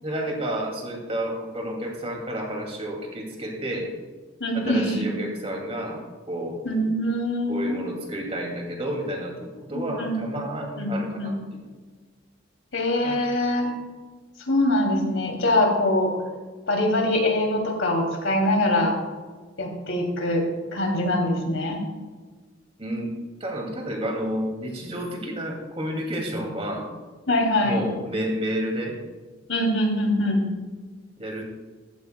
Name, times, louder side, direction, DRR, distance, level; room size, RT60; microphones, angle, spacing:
voice 1, 0.0-3.9 4.5-6.6 7.5-11.7 13.0-13.3 22.8-23.1 23.4-26.9 27.6-29.0 31.2-31.4, right 1 dB, 30° right, 0 dB, 2.5 m, -30 dB
voice 2, 4.4-5.0 6.6-7.8 9.7-10.1 10.8-11.3 12.7-13.7 14.5-16.1 16.7-18.9 19.6-20.4 20.7-21.8 27.3-27.8 29.5-30.5, left 1 dB, 90° left, 1 dB, 2.9 m, -23 dB
14.5 x 14.5 x 2.3 m, 1.4 s
head